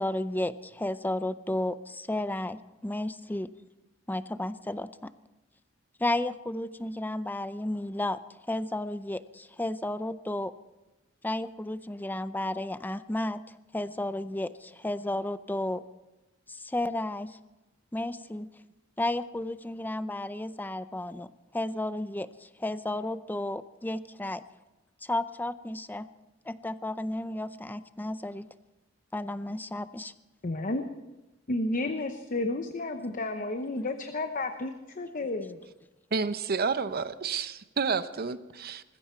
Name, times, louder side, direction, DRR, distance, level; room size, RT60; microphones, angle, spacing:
voice 1, 0.0-3.5 4.1-4.9 6.0-8.2 8.5-10.5 11.2-15.8 16.5-17.4 17.9-18.5 19.0-24.4 25.0-26.1 26.5-28.5 29.1-30.1, left 1 dB, 10° left, 14 dB, 0.5 m, -33 dB
voice 2, 30.4-30.8 31.5-35.6, left 2 dB, 45° left, 6 dB, 0.9 m, -32 dB
voice 3, 36.1-38.8, right 5 dB, 50° right, 13 dB, 0.7 m, -30 dB
19.5 x 15.5 x 4.5 m, 1.0 s
head